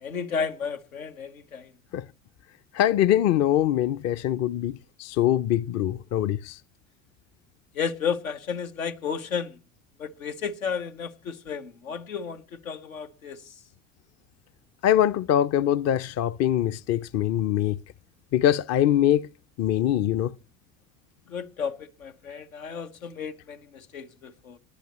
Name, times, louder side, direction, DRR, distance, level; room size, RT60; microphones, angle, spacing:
voice 1, 0.0-1.7 7.7-9.6 10.0-13.4 21.3-24.6, left 6 dB, 85° left, 1.3 m, -33 dB
voice 2, 2.7-6.6 14.8-17.8 18.3-19.3 19.6-20.3, left 11 dB, 40° left, 0.6 m, -23 dB
26.5 x 10.5 x 3.1 m
hypercardioid pair, 70°, 41 cm